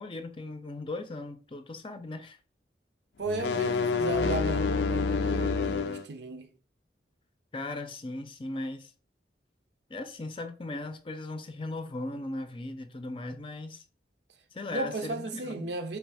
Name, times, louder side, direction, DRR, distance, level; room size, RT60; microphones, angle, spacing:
voice 1, 0.0-2.4 7.5-8.9 9.9-13.8 14.5-15.7, left 2 dB, 30° left, 0.5 m, -38 dB
voice 2, 3.2-6.5 14.7-16.0, right 2 dB, 75° right, 0.6 m, -35 dB
sound 1, 3.3-6.1, left 4 dB, 80° left, 0.4 m, -28 dB
3.3 x 3.1 x 4.8 m
head